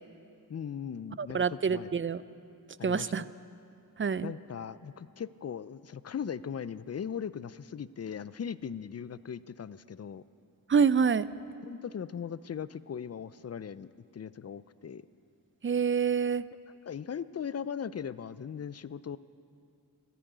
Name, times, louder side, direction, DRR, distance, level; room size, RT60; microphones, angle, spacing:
voice 1, 0.5-2.0 2.8-3.3 4.2-10.2 11.6-13.9 14.1-15.1 16.9-19.2, left 7 dB, 45° left, 17 dB, 0.4 m, -39 dB
voice 2, 1.2-2.2 2.8-3.2 4.0-4.3 10.7-11.3 15.6-16.4, right 6 dB, 35° right, 17 dB, 0.4 m, -26 dB
14.0 x 10.0 x 9.1 m, 2.6 s
wide cardioid pair, 50°, 38 cm